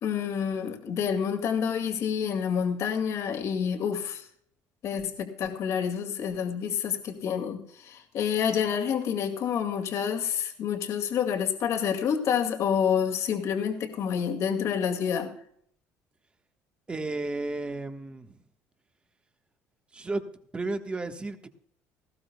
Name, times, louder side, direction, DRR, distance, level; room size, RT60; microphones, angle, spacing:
voice 1, 0.0-4.2 4.8-15.3, left 7 dB, 55° left, 5 dB, 2.2 m, -28 dB
voice 2, 16.9-18.4 19.9-20.2 20.5-21.5, right 2 dB, 20° right, 6 dB, 1.4 m, -33 dB
19.0 x 15.0 x 2.3 m, 0.65 s
cardioid pair, 120°, 6 cm